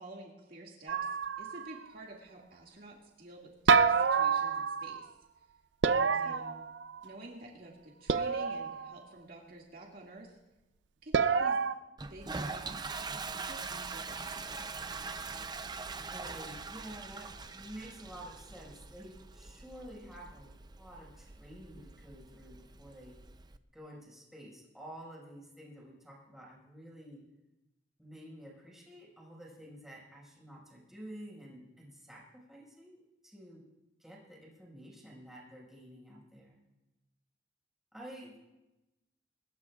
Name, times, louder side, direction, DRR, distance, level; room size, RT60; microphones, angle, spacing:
voice 1, 0.0-5.1 6.2-6.4 7.0-10.4 11.0-11.6 12.1-12.8 13.4-14.7, right 2 dB, 55° right, -2 dB, 2.2 m, -50 dB
sound 1, 0.9-1.8 3.7-5.1 5.8-7.1 8.1-8.9 11.1-11.7, right 5 dB, 85° right, 0.6 m, -28 dB
voice 2, 5.8-6.6 16.0-23.1 23.7-27.2 28.0-33.6 34.0-36.5 37.9-38.4, right 1 dB, ahead, -4 dB, 5.6 m, -50 dB
Toilet flush, 12.0-23.6, right 4 dB, 25° right, 0.5 m, -43 dB
23.5 x 20.5 x 2.5 m, 1.0 s
head